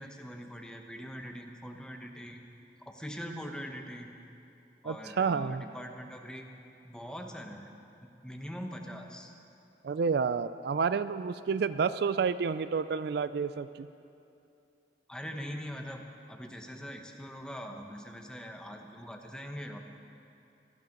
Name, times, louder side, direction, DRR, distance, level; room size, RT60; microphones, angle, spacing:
voice 1, 0.0-2.4 2.9-4.1 4.8-6.4 6.8-7.7 8.0-9.3 15.1-16.0 16.3-19.8, equal, 5° left, 3 dB, 1.0 m, -42 dB
voice 2, 4.8-5.6 9.8-13.9, right 5 dB, 65° right, 14 dB, 0.4 m, -30 dB
18.5 x 12.0 x 5.3 m, 2.7 s
head